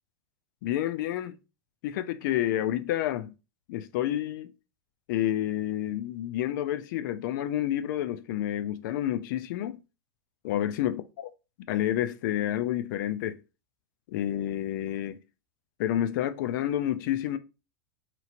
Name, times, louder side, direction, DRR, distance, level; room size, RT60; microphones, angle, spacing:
voice 1, 0.6-1.4 1.8-3.3 3.7-4.5 5.1-9.8 10.4-11.3 11.7-13.4 14.1-15.2 15.8-17.4, left 12 dB, 60° left, 0.4 m, -29 dB
2.9 x 2.8 x 2.5 m
hypercardioid pair, 105°, 12 cm